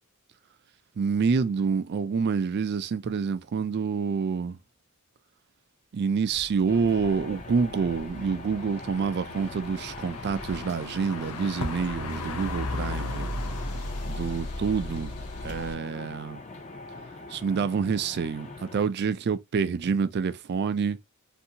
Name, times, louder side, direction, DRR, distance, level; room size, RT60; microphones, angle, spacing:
voice 1, 1.0-4.6 5.9-13.3 14.1-15.1 15.4-16.4 17.3-21.0, right 5 dB, 50° right, 0.3 m, -27 dB
sound 1, 6.3-15.7, left 2 dB, 85° left, 0.6 m, -36 dB
sound 2, 6.7-18.9, left 2 dB, 30° left, 0.5 m, -42 dB
2.7 x 2.6 x 2.7 m
head